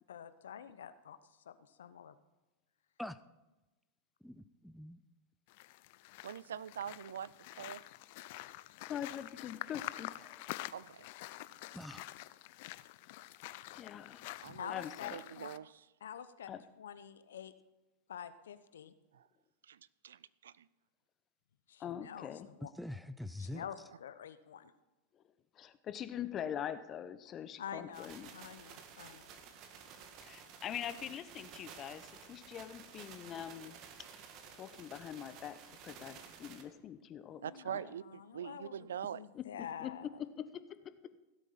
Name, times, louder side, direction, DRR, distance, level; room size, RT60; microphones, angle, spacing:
voice 1, 0.1-1.2 1.4-2.1 14.6-15.5 16.0-16.5 16.8-17.5 18.1-18.9 21.7-22.7 23.4-24.7 27.6-29.3 37.2-40.1, left 9 dB, 75° left, 13 dB, 0.8 m, -47 dB
voice 2, 4.2-5.0 11.7-12.1 22.6-23.6, left 1 dB, ahead, 12 dB, 0.6 m, -44 dB
sound 1, 5.5-15.6, left 18 dB, 60° left, 0.5 m, -47 dB
voice 3, 6.2-7.3 7.6-7.8 10.7-11.1 14.4-14.7 15.1-15.9 19.1-19.3 19.6-20.7 37.4-39.2, right 9 dB, 80° right, 20 dB, 0.4 m, -44 dB
voice 4, 8.9-10.5 13.8-14.2 14.7-15.2 16.5-16.6 21.8-22.5 25.1-25.2 25.5-28.3 30.2-33.8 34.5-37.8 39.3-39.5 39.8-41.0, left 9 dB, 35° left, 12 dB, 1.0 m, -43 dB
sound 2, 27.9-36.6, right 7 dB, 50° right, 1.8 m, -53 dB
16.5 x 8.3 x 5.8 m, 1.1 s
hypercardioid pair, 95°, 0 cm